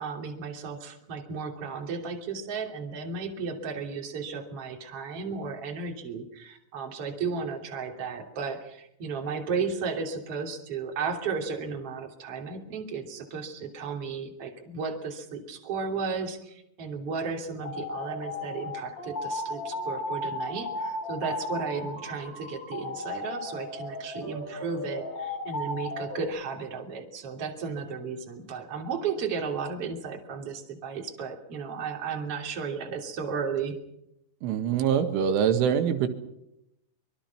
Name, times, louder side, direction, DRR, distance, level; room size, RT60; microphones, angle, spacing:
voice 1, 0.0-33.8, right 5 dB, 35° right, 3 dB, 3.4 m, -34 dB
sound 1, 17.6-26.3, left 2 dB, 15° left, 8.3 m, -35 dB
voice 2, 34.4-36.1, right 8 dB, 90° right, 7 dB, 4.3 m, -24 dB
24.5 x 23.5 x 6.0 m, 0.80 s
omnidirectional pair, 5.5 m